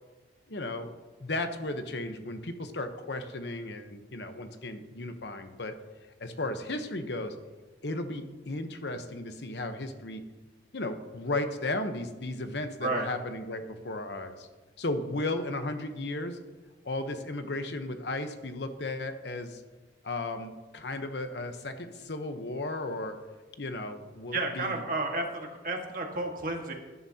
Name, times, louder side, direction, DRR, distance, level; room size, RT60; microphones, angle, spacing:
voice 1, 0.5-0.9 1.2-5.7 6.2-7.3 7.8-10.2 10.7-14.5 14.8-16.4 16.8-19.6 20.0-23.2 23.6-24.8, left 2 dB, 70° left, 8 dB, 1.0 m, -35 dB
voice 2, 24.3-26.7, right 2 dB, 50° right, 2 dB, 1.7 m, -32 dB
17.5 x 11.0 x 2.9 m, 1.3 s
head